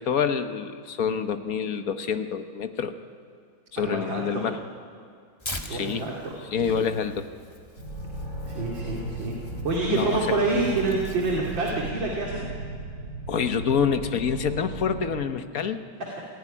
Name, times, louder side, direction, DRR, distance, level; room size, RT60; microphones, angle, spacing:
voice 1, 0.0-3.0 3.7-4.6 5.7-6.1 6.5-7.3 9.9-10.4 13.3-15.8, left 6 dB, 50° left, 9 dB, 1.2 m, -27 dB
voice 2, 3.8-4.5 5.7-6.8 8.4-9.4 9.6-12.5, right 3 dB, 60° right, -2 dB, 3.3 m, -27 dB
Tearing, 5.4-11.9, left 1 dB, 15° left, 1.5 m, -43 dB
sound 1, 7.8-15.2, right 2 dB, 40° right, 3.5 m, -36 dB
sound 2, 8.0-13.7, left 5 dB, 65° left, 8.0 m, -47 dB
26.0 x 17.0 x 10.0 m, 2.2 s
omnidirectional pair, 2.3 m